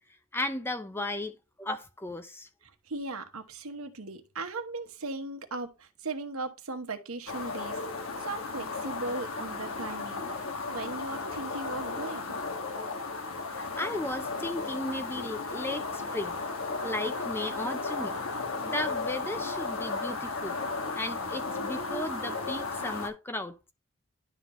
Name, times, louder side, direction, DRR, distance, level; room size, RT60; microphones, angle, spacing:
voice 1, 0.3-2.5 13.5-16.4 16.8-18.2 18.6-20.6 20.9-23.6, left 1 dB, 10° left, 0.5 m, -35 dB
voice 2, 2.8-7.8 8.2-10.3 10.7-12.3, right 3 dB, 80° right, 1.1 m, -37 dB
sound 1, 7.3-23.1, left 3 dB, 70° left, 1.3 m, -35 dB
11.0 x 3.9 x 3.0 m
head